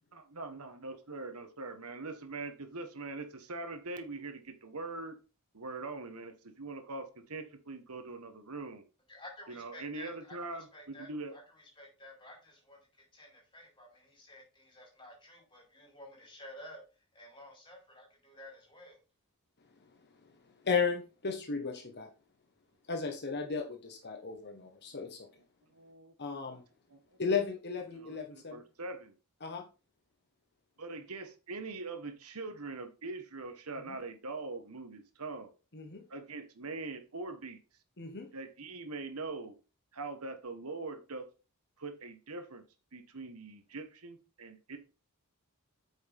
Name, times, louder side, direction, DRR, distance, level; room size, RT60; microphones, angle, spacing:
voice 1, 0.1-5.2 5.5-8.8 9.5-11.3 25.7-26.6 26.9-27.0 27.9-29.1 30.8-35.5 36.1-37.6 38.3-39.5 39.9-41.3 41.8-42.6 42.9-44.8, right 3 dB, 75° right, 1.5 m, -42 dB
voice 2, 9.1-12.9 13.1-16.8 17.1-19.0, left 1 dB, 20° left, 4.9 m, -52 dB
voice 3, 20.6-22.1 22.9-25.3 26.2-26.6 27.2-28.6 29.4-29.6 33.9-34.0 35.7-36.0 38.0-38.3, left 5 dB, 50° left, 1.4 m, -34 dB
8.8 x 6.3 x 3.6 m
head